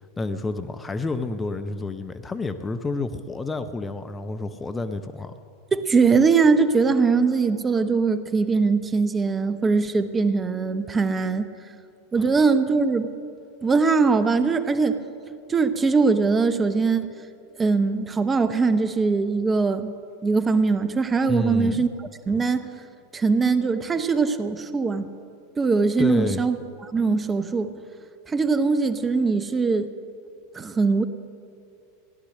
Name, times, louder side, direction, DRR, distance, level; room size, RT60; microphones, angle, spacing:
voice 1, 0.2-5.3 12.2-12.3 21.3-21.9 26.0-26.4, left 3 dB, 15° left, 9 dB, 0.6 m, -29 dB
voice 2, 5.7-11.5 12.1-13.1 13.6-15.0 15.5-17.1 17.6-19.9 20.2-21.9 22.3-22.7 23.1-25.1 25.6-26.6 26.8-27.7 28.3-29.9 30.5-31.0, right 4 dB, 20° right, 11 dB, 0.8 m, -21 dB
16.0 x 11.5 x 6.4 m, 2.4 s
figure-of-eight pair, 85°, 0 cm